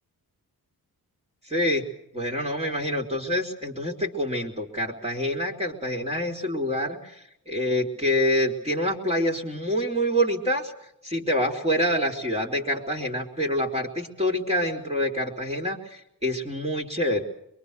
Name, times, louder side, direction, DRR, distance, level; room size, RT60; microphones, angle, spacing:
voice 1, 1.5-1.9 2.1-10.7 11.0-17.2, equal, 15° right, -1 dB, 3.4 m, -26 dB
23.5 x 23.0 x 6.7 m, 0.77 s
cardioid pair, 75°, 38 cm